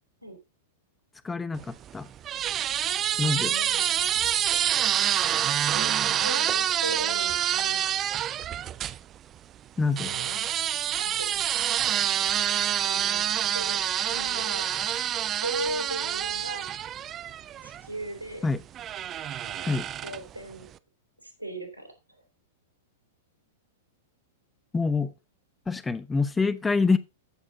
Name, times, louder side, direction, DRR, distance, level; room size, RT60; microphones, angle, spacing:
voice 1, 1.2-2.1 3.2-3.5 9.8-10.1 18.4-18.6 19.6-19.9 24.7-25.1 25.7-27.0, left 4 dB, 10° left, 0.9 m, -26 dB
sound 1, 1.6-9.0 10.0-17.9 18.7-20.4, right 10 dB, 25° right, 0.5 m, -27 dB
voice 2, 3.4-4.0 5.7-7.8 9.9-10.5 11.0-11.3 12.8-13.2 13.5-14.6 15.4-16.7 17.6-18.5 19.4-19.7 20.0-20.7 21.2-22.2, right 1 dB, 90° left, 3.7 m, -38 dB
14.0 x 6.7 x 3.9 m
figure-of-eight pair, 100°, 0 cm